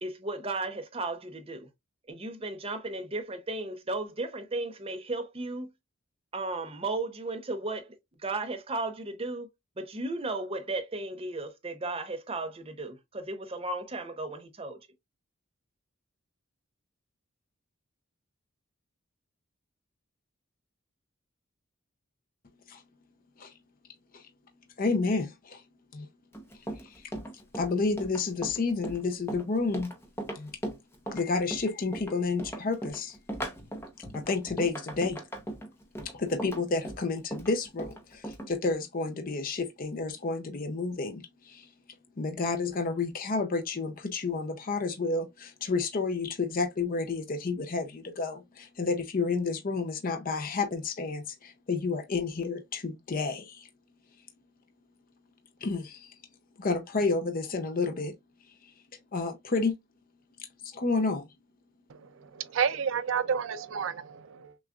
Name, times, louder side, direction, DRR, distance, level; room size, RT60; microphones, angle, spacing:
voice 1, 0.0-1.7 2.1-5.7 6.3-7.9 8.2-9.5 9.8-14.8, right 2 dB, 25° right, 0.7 m, -35 dB
voice 2, 24.8-25.6 25.9-26.1 26.8-27.0 27.5-29.9 30.3-30.5 31.1-33.2 34.1-35.2 36.0-41.7 42.2-53.7 55.6-56.1 56.6-58.1 59.1-59.7 60.6-61.3, left 4 dB, 40° left, 0.6 m, -30 dB
Run, 26.3-38.5, right 1 dB, 10° left, 0.8 m, -38 dB
voice 3, 61.9-64.5, right 7 dB, 65° right, 0.4 m, -31 dB
6.1 x 2.4 x 2.4 m
head